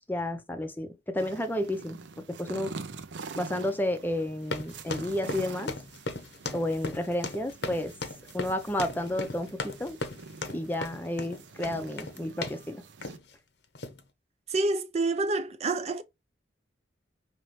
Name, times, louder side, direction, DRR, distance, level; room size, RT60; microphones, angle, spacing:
voice 1, 0.1-2.0 2.3-2.7 3.4-5.7 6.5-7.9 8.3-10.0 10.5-12.8, left 1 dB, 10° left, 0.6 m, -31 dB
sound 1, 1.2-13.2, right 4 dB, 85° right, 0.6 m, -45 dB
sound 2, 4.4-12.7 13.0-13.3 13.8-14.0, left 3 dB, 70° left, 0.8 m, -37 dB
voice 2, 14.5-16.0, right 3 dB, 35° right, 0.4 m, -28 dB
5.5 x 3.0 x 3.1 m
head